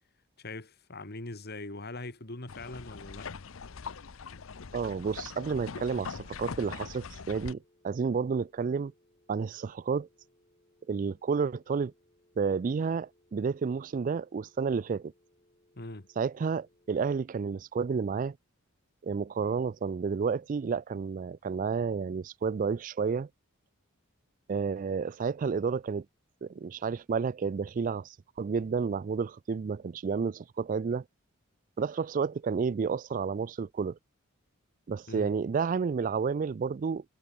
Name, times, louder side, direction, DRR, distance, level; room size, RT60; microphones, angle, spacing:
voice 1, 0.4-3.3 15.8-16.1 35.1-35.3, left 2 dB, 50° left, 2.1 m, -41 dB
sound 1, 2.5-7.5, left 5 dB, 65° left, 0.7 m, -42 dB
voice 2, 4.7-8.9 9.3-10.1 10.9-11.9 12.4-15.1 16.2-18.4 19.0-23.3 24.5-26.1 26.4-31.0 31.8-34.0 34.9-37.0, right 5 dB, 40° right, 0.3 m, -31 dB
sound 2, 7.3-17.3, left 1 dB, 30° left, 7.3 m, -68 dB
head